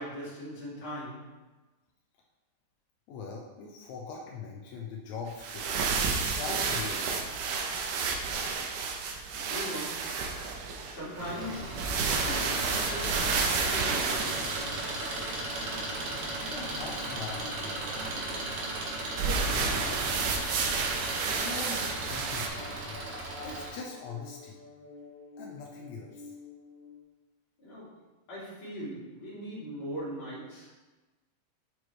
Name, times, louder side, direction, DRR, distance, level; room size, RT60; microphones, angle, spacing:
voice 1, 0.0-1.4 9.1-10.3 10.8-14.7 27.6-28.0 28.3-30.7, equal, 40° left, -9 dB, 2.8 m, -41 dB
voice 2, 3.1-7.3 9.0-9.4 16.5-18.5 19.1-20.3 21.3-23.0 23.4-24.6 25.4-26.3, left 4 dB, 80° left, -1 dB, 1.6 m, -42 dB
sound 1, 5.3-15.4 19.1-22.5, right 5 dB, 80° right, 2.2 m, -31 dB
sound 2, 10.9-27.0, left 2 dB, 35° right, 0.6 m, -50 dB
Engine, 11.1-23.7, right 2 dB, 60° right, 1.5 m, -36 dB
7.9 x 4.4 x 3.1 m, 1.2 s
omnidirectional pair, 3.9 m